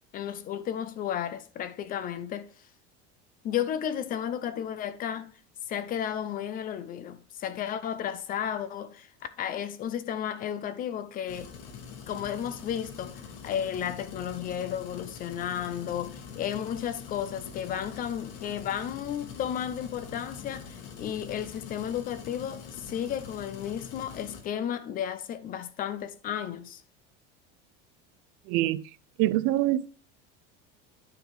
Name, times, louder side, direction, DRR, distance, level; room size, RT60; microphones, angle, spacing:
voice 1, 0.1-2.5 3.4-5.4 5.7-11.5 12.1-26.8, left 9 dB, 30° left, 0.5 m, -33 dB
sound 1, 11.3-24.4, left 6 dB, 55° left, 1.5 m, -44 dB
voice 2, 28.5-28.8 29.2-29.9, right 15 dB, 55° right, 0.4 m, -25 dB
9.5 x 3.9 x 4.7 m
cardioid pair, 155°, 30 cm